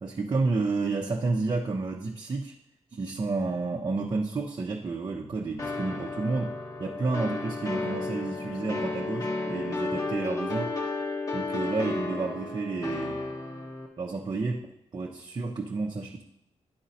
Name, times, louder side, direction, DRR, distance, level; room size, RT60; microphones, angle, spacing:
voice 1, 0.0-2.5 2.9-10.7 11.3-13.2 14.0-16.2, right 3 dB, 40° right, -1 dB, 0.8 m, -31 dB
sound 1, 5.6-13.9, left 3 dB, 30° left, 1.2 m, -32 dB
10.5 x 3.9 x 4.2 m, 0.78 s
cardioid pair, 75°, 11 cm